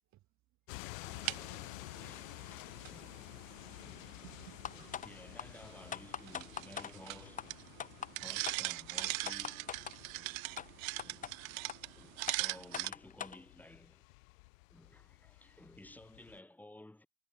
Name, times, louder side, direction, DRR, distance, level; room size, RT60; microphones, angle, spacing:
voice 1, 0.0-0.9 1.2-1.8 2.3-2.4 14.8-15.8, right 16 dB, 45° right, 7.1 m, -71 dB
sound 1, 0.7-16.4, left 27 dB, 75° left, 2.3 m, -52 dB
sound 2, 1.0-12.9, right 22 dB, 85° right, 2.4 m, -42 dB
voice 2, 2.0-3.2 3.8-4.1 4.7-7.7 8.2-9.8 10.1-10.4 11.0-11.4 11.9-14.0 14.7-17.1, left 1 dB, 5° left, 5.3 m, -55 dB
sound 3, 4.6-5.1 5.4-5.5 5.9-6.9 7.4-7.5 7.8-8.1 8.4-8.6 9.0-10.0 10.6-10.7 11.0-11.3 11.7-11.8 12.3-13.4, left 8 dB, 20° left, 1.1 m, -41 dB
cardioid pair, 155°, 40 cm